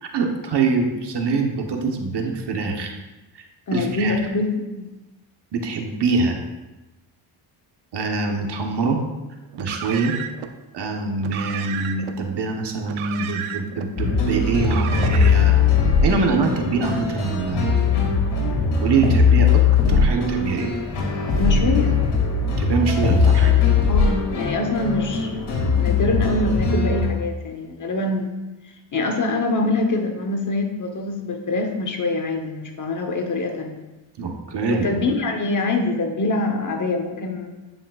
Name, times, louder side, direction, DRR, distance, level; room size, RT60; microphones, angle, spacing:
voice 1, 0.0-3.0 3.7-4.2 5.5-6.4 7.9-9.0 9.6-10.2 10.7-15.7 16.0-17.8 18.8-19.6 19.9-20.7 22.6-23.5 34.2-34.9, right 4 dB, 55° right, 3 dB, 1.1 m, -24 dB
voice 2, 3.7-4.9 21.4-22.0 23.9-28.3 28.9-33.8 34.7-37.5, left 3 dB, 35° left, 4 dB, 1.0 m, -24 dB
Car, 9.5-10.5 11.2-12.2 12.8-13.9 14.6-15.5, right 9 dB, 70° right, 0.7 m, -32 dB
sound 1, 14.0-27.0, left 5 dB, 75° left, 2.2 m, -20 dB
10.0 x 5.2 x 2.4 m, 1.1 s
cardioid pair, 85°, 50 cm